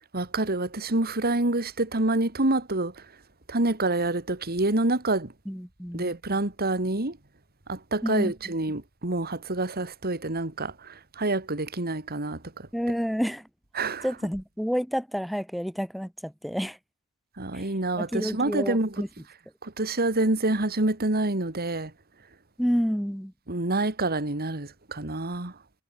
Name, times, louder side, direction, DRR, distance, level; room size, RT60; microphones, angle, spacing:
voice 1, 0.1-3.1 3.5-5.3 5.9-7.2 7.7-12.7 13.7-14.3 17.4-19.1 19.6-21.9 23.5-25.6, right 2 dB, 45° right, 2.6 m, -27 dB
voice 2, 5.5-6.2 8.0-8.3 12.7-13.5 14.0-16.8 17.5-17.7 17.9-19.1 22.6-23.3, equal, ahead, 3.9 m, -29 dB
head